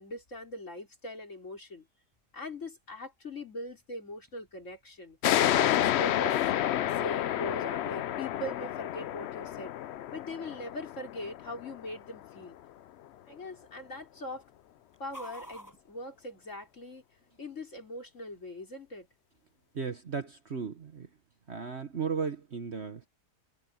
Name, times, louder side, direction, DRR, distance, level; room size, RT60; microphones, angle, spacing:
voice 1, 0.0-1.9 2.3-5.2 5.5-9.7 10.1-12.6 13.3-14.4 15.0-17.0 17.4-19.1, left 1 dB, 50° left, 4.4 m, -41 dB
sound 1, 2.1-16.9, equal, 10° left, 6.7 m, -58 dB
sound 2, 5.2-12.4, left 12 dB, 80° left, 0.5 m, -30 dB
voice 2, 19.7-21.1 21.5-23.1, right 6 dB, 45° right, 1.4 m, -35 dB
omnidirectional pair, 1.7 m